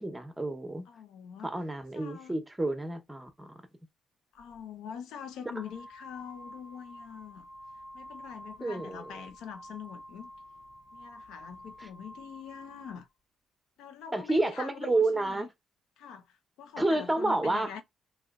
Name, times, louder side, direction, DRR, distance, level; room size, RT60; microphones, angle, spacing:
voice 1, 0.0-0.9 1.4-3.5 8.6-9.1 14.1-15.5 16.8-17.7, right 2 dB, 10° right, 0.9 m, -30 dB
voice 2, 0.9-1.6 1.9-2.4 4.3-7.5 7.9-10.3 10.9-13.1 13.8-15.5 16.0-17.8, left 8 dB, 85° left, 0.7 m, -44 dB
sound 1, 4.4-4.6 5.4-13.1, left 1 dB, 10° left, 0.6 m, -49 dB
3.0 x 2.9 x 2.4 m
cardioid pair, 90°, 0 cm